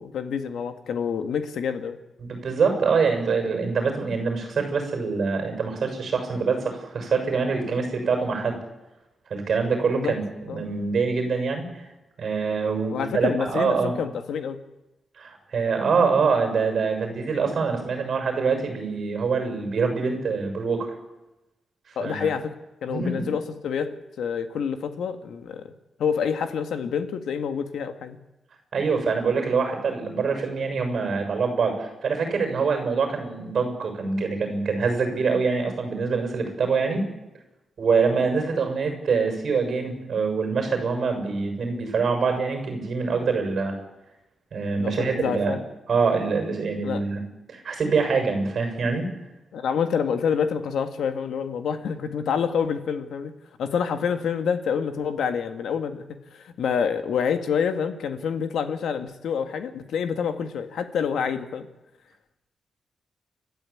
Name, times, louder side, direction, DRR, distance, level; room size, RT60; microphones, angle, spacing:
voice 1, 0.0-2.0 10.0-10.2 10.5-10.6 12.9-14.6 22.0-22.5 22.8-25.6 26.0-28.2 44.8-45.6 46.8-47.1 49.5-53.3 53.6-56.0 56.3-61.7, left 7 dB, 85° left, 8 dB, 1.9 m, -27 dB
voice 2, 2.2-8.6 9.3-11.9 12.2-13.9 15.2-20.9 22.0-22.3 22.9-23.3 28.7-37.0 37.8-43.8 44.5-45.6 45.9-47.2 47.5-49.0, right 5 dB, 45° right, 4 dB, 6.9 m, -25 dB
30.0 x 13.0 x 8.7 m, 0.99 s
wide cardioid pair, 165°, 0 cm